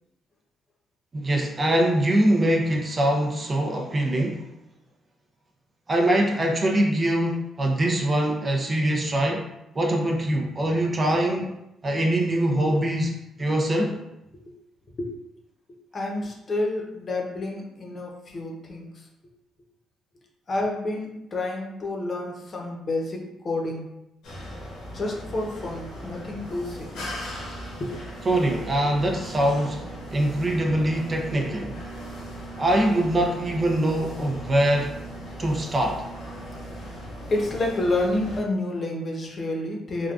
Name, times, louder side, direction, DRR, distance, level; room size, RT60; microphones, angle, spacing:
voice 1, 1.1-4.5 5.9-9.5 9.7-11.5 11.8-14.0 28.2-29.8 30.1-31.8 32.6-35.0 35.4-36.0, right 1 dB, 30° right, 1 dB, 0.5 m, -23 dB
voice 2, 15.9-18.9 20.5-23.9 24.9-27.3 27.8-27.9 36.8-37.0 37.3-40.1, left 2 dB, 40° left, -1 dB, 0.8 m, -29 dB
sound 1, 24.2-38.4, equal, 85° left, 1.0 m, -38 dB
3.6 x 2.3 x 2.4 m, 0.86 s
cardioid pair, 90°, 0 cm